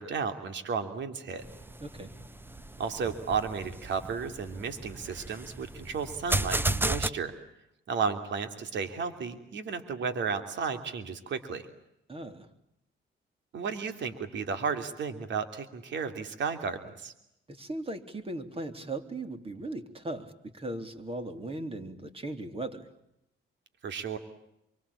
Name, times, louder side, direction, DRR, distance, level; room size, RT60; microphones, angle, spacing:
voice 1, 0.0-1.4 2.8-7.3 7.9-11.6 13.5-17.1 23.8-24.2, right 5 dB, 65° right, 8 dB, 3.2 m, -33 dB
sound 1, 1.4-7.1, right 2 dB, 10° right, 1.0 m, -34 dB
voice 2, 1.8-2.1 12.1-12.5 17.5-22.9, right 2 dB, 30° right, 7 dB, 3.8 m, -38 dB
27.0 x 24.5 x 8.6 m, 0.83 s
cardioid pair, 90°, 20 cm